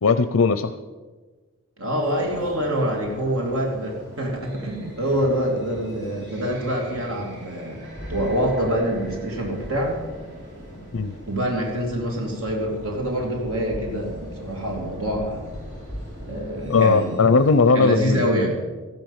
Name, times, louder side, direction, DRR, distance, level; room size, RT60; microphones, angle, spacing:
voice 1, 0.0-0.7 10.9-11.1 16.7-18.3, left 4 dB, 80° left, 10 dB, 0.6 m, -18 dB
voice 2, 1.8-7.8 8.1-10.0 11.3-15.4 16.2-17.2 17.7-18.6, equal, 85° right, 0 dB, 2.8 m, -25 dB
sound 1, 2.0-17.7, equal, 55° right, 4.1 m, -44 dB
sound 2, 2.3-16.8, equal, 30° left, 3.1 m, -41 dB
14.0 x 11.0 x 7.3 m, 1.4 s
head